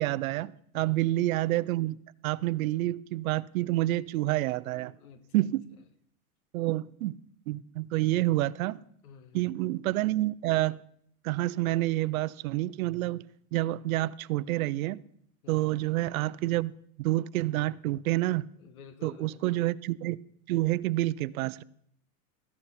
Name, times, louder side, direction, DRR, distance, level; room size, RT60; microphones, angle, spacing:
voice 1, 0.0-4.9 5.3-5.7 6.5-7.2 7.5-8.8 9.3-10.8 11.2-13.2 13.5-15.0 15.5-16.7 17.0-18.5 19.0-20.2 20.5-21.6, right 16 dB, 70° right, 0.6 m, -28 dB
voice 2, 0.7-1.2 4.9-5.5 9.0-9.5 15.4-15.8 18.6-19.7, left 7 dB, 75° left, 1.4 m, -52 dB
14.0 x 11.0 x 4.2 m
supercardioid pair, 170°, 44 cm